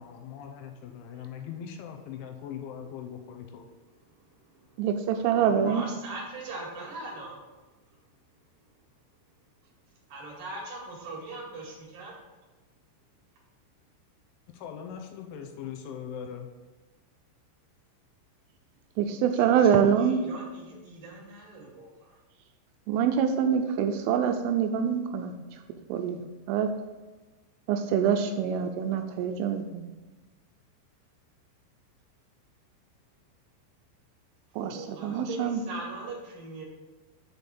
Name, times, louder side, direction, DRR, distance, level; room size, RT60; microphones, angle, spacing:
voice 1, 0.0-3.7 14.5-16.5, left 8 dB, 80° left, 4 dB, 2.9 m, -40 dB
voice 2, 4.8-5.9 19.0-20.2 22.9-25.3 25.9-26.2 26.5-26.7 27.7-29.9 34.6-35.6, right 8 dB, 85° right, 6 dB, 3.0 m, -25 dB
voice 3, 5.4-7.3 10.1-12.1 19.5-22.1 34.6-36.6, right 2 dB, 55° right, -3 dB, 3.0 m, -40 dB
8.1 x 4.0 x 6.8 m, 1.2 s
omnidirectional pair, 5.9 m